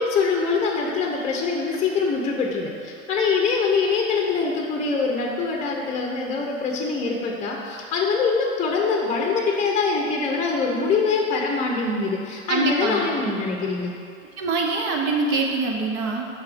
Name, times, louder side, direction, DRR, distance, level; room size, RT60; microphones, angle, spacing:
voice 1, 0.0-13.9, left 4 dB, 15° left, 0 dB, 0.8 m, -24 dB
voice 2, 12.5-13.1 14.4-16.3, right 3 dB, 45° right, 1 dB, 1.0 m, -24 dB
5.5 x 4.7 x 6.1 m, 2.4 s
figure-of-eight pair, 90°, 40 cm